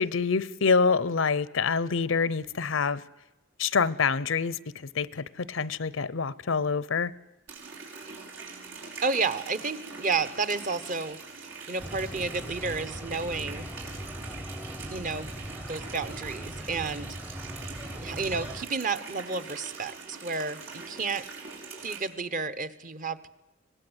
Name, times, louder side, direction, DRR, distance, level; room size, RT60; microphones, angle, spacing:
voice 1, 0.0-3.0 3.6-7.1, left 5 dB, 80° left, 20 dB, 0.7 m, -26 dB
Water tap faucet, 7.5-22.0, right 4 dB, 90° right, 5.9 m, -43 dB
voice 2, 9.0-13.7 14.9-15.3 15.7-17.2 18.0-21.2 21.8-23.3, right 4 dB, 40° right, 14 dB, 1.0 m, -31 dB
sound 1, 11.8-18.7, equal, 10° right, 0.7 m, -40 dB
24.5 x 18.0 x 8.0 m, 0.98 s
head